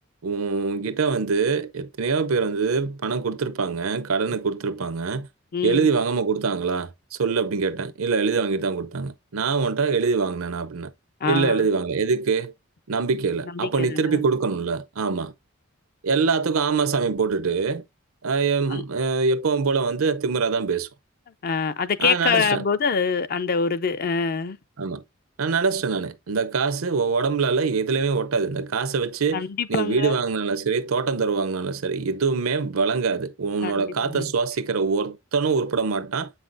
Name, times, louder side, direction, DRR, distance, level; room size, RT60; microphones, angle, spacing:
voice 1, 0.2-5.3 5.6-10.9 11.3-12.5 12.9-15.3 16.0-17.8 18.2-20.9 22.0-22.6 24.8-25.0 25.4-29.4 29.7-36.3, right 5 dB, 90° right, 0.7 m, -24 dB
voice 2, 5.5-5.9 11.2-11.6 13.6-14.2 18.7-18.8 21.4-24.6 29.3-30.1 33.6-34.2, left 5 dB, 45° left, 0.4 m, -25 dB
7.9 x 5.6 x 2.6 m
head